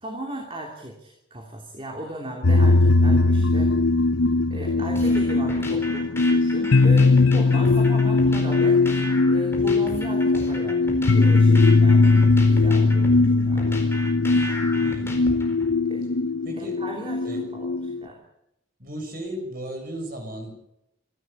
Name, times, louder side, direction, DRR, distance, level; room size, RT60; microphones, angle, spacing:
voice 1, 0.0-3.7 4.5-8.8 9.3-10.8 11.1-12.2 12.5-13.8 15.9-16.0 16.6-17.2 17.5-18.2, right 1 dB, 25° right, 1 dB, 3.0 m, -36 dB
sound 1, 2.4-18.0, left 3 dB, 90° left, 0.8 m, -19 dB
sound 2, 5.0-15.7, left 1 dB, 10° left, 4.5 m, -35 dB
voice 2, 7.1-7.9 14.8-15.2 16.4-16.8 17.2-17.5 18.8-20.5, right 1 dB, 45° right, 3 dB, 6.5 m, -36 dB
26.5 x 12.5 x 8.5 m, 0.83 s
head